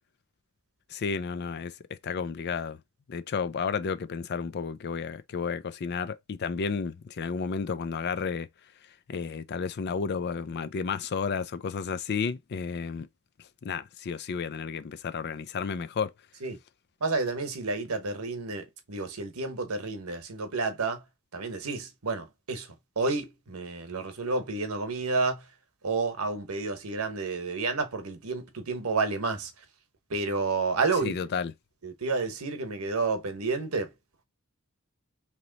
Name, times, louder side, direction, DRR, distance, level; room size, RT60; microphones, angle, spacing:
voice 1, 0.9-2.8 3.1-8.5 9.1-13.1 13.6-16.1 31.0-31.5, left 5 dB, 50° left, 0.4 m, -32 dB
voice 2, 17.0-21.0 21.3-25.5 25.8-29.5 30.1-31.2 31.8-33.9, right 3 dB, 90° right, 1.0 m, -30 dB
3.0 x 2.9 x 3.9 m
head